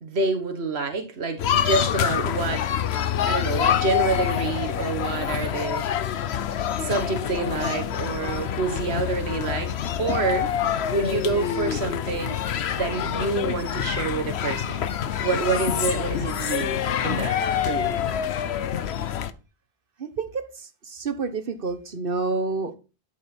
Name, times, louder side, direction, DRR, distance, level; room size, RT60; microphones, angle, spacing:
voice 1, 0.0-2.6 3.2-5.9 6.7-9.7 10.0-10.5 10.9-12.3 12.7-14.9 15.2-17.4 17.7-18.0, right 3 dB, 90° right, 1.6 m, -27 dB
sound 1, 1.4-19.3, left 9 dB, 90° left, 1.0 m, -26 dB
voice 2, 20.0-22.8, right 4 dB, 60° right, 1.4 m, -29 dB
12.0 x 7.1 x 4.4 m
omnidirectional pair, 1.0 m